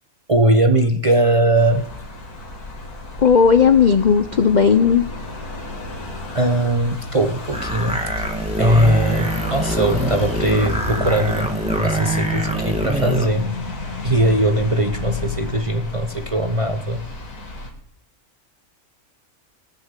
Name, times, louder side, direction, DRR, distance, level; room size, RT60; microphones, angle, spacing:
voice 1, 0.3-1.9 6.3-8.3 8.6-11.5 11.8-13.6 14.0-17.0, right 1 dB, 35° right, 6 dB, 0.5 m, -19 dB
sound 1, 1.6-17.7, left 2 dB, 80° left, 2.7 m, -31 dB
voice 2, 3.2-5.0, left 6 dB, 55° left, 9 dB, 0.5 m, -14 dB
sound 2, 7.5-13.3, right 1 dB, 5° right, 1.1 m, -24 dB
18.5 x 6.8 x 7.5 m, 0.76 s
omnidirectional pair, 1.6 m